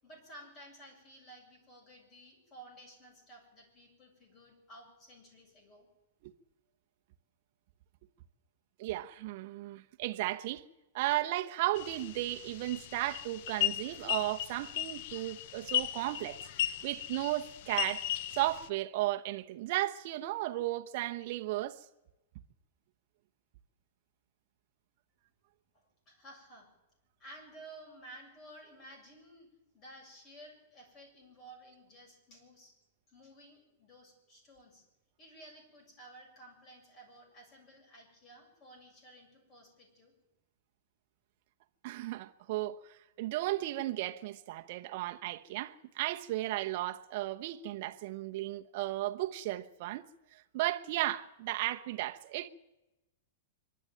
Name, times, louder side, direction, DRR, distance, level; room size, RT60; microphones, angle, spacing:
voice 1, 0.0-5.9 26.1-26.7 27.2-29.5 29.7-32.7 33.1-34.8 35.2-40.1, right 1 dB, 25° left, 7.1 m, -54 dB
voice 2, 8.8-10.6 10.9-18.0 18.3-21.8 41.8-42.8 43.2-50.0 50.5-52.5, right 16 dB, 45° right, 1.1 m, -35 dB
sound 1, 11.7-18.7, left 12 dB, 45° left, 0.6 m, -36 dB
24.5 x 12.5 x 9.1 m
supercardioid pair, 165°, 0 cm